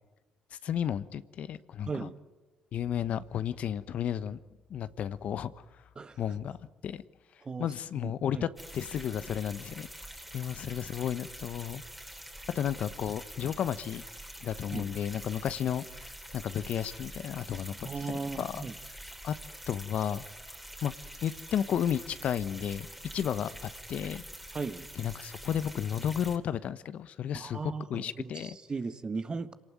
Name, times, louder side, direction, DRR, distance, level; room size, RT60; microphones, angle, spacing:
voice 1, 0.5-2.1 2.7-4.4 4.7-5.5 6.2-6.6 6.8-7.0 7.6-9.9 10.3-11.8 12.5-14.0 14.4-18.6 19.2-19.3 19.7-20.2 20.8-20.9 21.2-22.9 23.1-24.2 25.0-28.6, left 9 dB, 60° left, 14 dB, 1.0 m, -33 dB
voice 2, 5.9-6.4 7.4-7.7 8.0-8.4 14.7-14.9 17.8-18.7 24.5-24.9 27.3-29.5, right 4 dB, 35° right, 11 dB, 1.7 m, -37 dB
sound 1, 8.6-26.4, right 1 dB, 5° right, 3.4 m, -46 dB
27.5 x 18.5 x 9.3 m, 1.1 s
hypercardioid pair, 55°, 3 cm